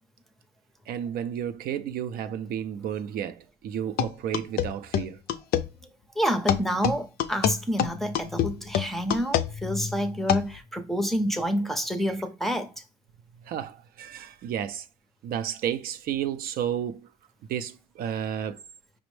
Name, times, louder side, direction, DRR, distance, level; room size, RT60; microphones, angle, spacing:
voice 1, 0.9-5.2 12.1-12.2 13.4-14.9 15.2-17.1 17.5-18.6, right 9 dB, 65° right, 0.4 m, -32 dB
sound 1, 4.0-5.7 6.5-10.6, left 9 dB, 65° left, 0.4 m, -26 dB
voice 2, 6.2-12.7, equal, ahead, 0.5 m, -28 dB
5.1 x 2.0 x 3.1 m
cardioid pair, 110°, 17 cm